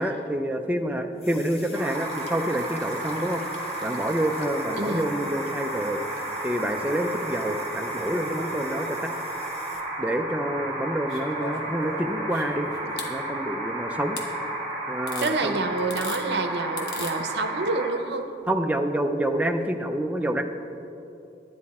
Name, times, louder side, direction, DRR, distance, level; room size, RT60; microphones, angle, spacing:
voice 1, 0.0-3.4 3.8-9.1 10.0-12.7 13.1-14.2 14.9-15.7 18.5-20.4, right 1 dB, 10° right, 4 dB, 0.4 m, -27 dB
sound 1, 1.2-9.8, left 3 dB, 35° left, 0.9 m, -46 dB
sound 2, 1.7-17.9, right 1 dB, 25° right, 2.1 m, -33 dB
voice 2, 4.8-5.1 12.8-12.9 15.2-18.3, right 3 dB, 70° right, 7 dB, 0.7 m, -28 dB
sound 3, 11.1-13.1 14.2-14.3 15.1-15.3 15.8-16.2 16.8-17.1 18.4-18.5, left 3 dB, 65° left, 1.2 m, -38 dB
10.5 x 9.5 x 4.2 m, 2.9 s
head